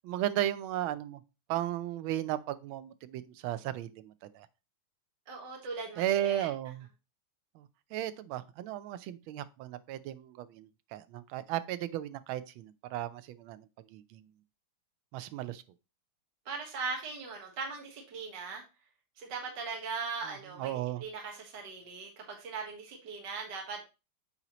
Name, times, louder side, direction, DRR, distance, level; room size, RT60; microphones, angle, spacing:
voice 1, 0.0-1.2 1.5-4.5 6.0-6.9 7.5-14.2 15.1-15.6 20.6-21.0, right 13 dB, 75° right, 1.3 m, -35 dB
voice 2, 5.3-6.5 16.5-18.6 19.2-23.8, right 4 dB, 55° right, 2.0 m, -39 dB
7.9 x 4.3 x 2.9 m
omnidirectional pair, 2.4 m